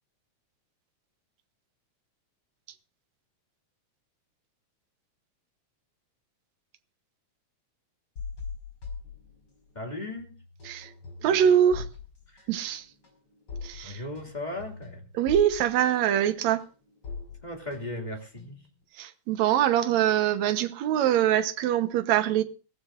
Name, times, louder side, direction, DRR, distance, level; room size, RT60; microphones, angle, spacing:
sound 1, 8.2-9.9 10.2-18.8, left 4 dB, 40° left, 5.4 m, -42 dB
voice 1, 9.7-10.4 12.3-12.5 13.8-15.0 17.4-18.6, left 1 dB, 15° left, 2.4 m, -37 dB
voice 2, 11.2-11.9 12.5-12.9 13.6-14.0 15.2-16.6 19.0-22.4, right 10 dB, 70° right, 2.3 m, -23 dB
21.5 x 16.0 x 2.6 m
omnidirectional pair, 3.5 m